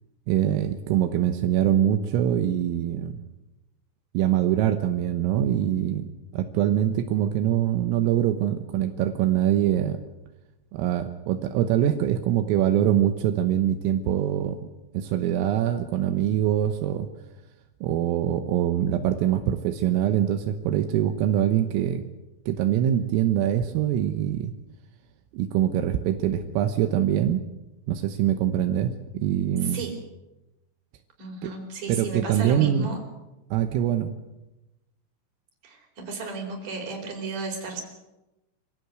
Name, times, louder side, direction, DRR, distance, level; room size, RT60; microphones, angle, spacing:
voice 1, 0.3-3.2 4.2-10.0 10.7-14.6 14.9-17.1 17.8-22.0 22.5-24.5 25.3-27.4 27.9-29.8 31.4-31.5 31.9-33.0 33.5-34.1, right 11 dB, 85° right, 7 dB, 3.6 m, -24 dB
voice 2, 29.6-29.9 31.2-33.0 35.6-35.8 36.1-37.8, right 3 dB, 40° right, 2 dB, 5.6 m, -33 dB
25.5 x 16.5 x 8.0 m, 0.99 s
omnidirectional pair, 6.0 m